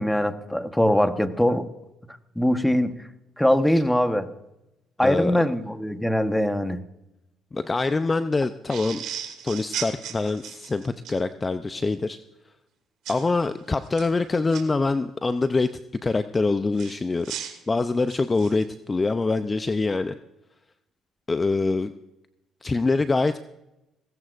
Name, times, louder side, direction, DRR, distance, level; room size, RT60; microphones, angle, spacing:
voice 1, 0.0-1.7 2.4-3.0 3.4-4.3 5.0-6.8, left 1 dB, 5° left, 9 dB, 1.2 m, -22 dB
voice 2, 5.0-5.4 7.5-9.0 9.4-12.2 13.1-15.7 16.0-17.3 17.7-20.1 21.3-21.9 22.6-23.4, left 3 dB, 25° left, 10 dB, 0.6 m, -24 dB
sound 1, 8.7-11.2 13.1-13.3 13.8-14.6 16.8-18.6, right 9 dB, 75° right, 2.4 m, -36 dB
19.0 x 16.5 x 2.5 m, 0.92 s
supercardioid pair, 75°, 0 cm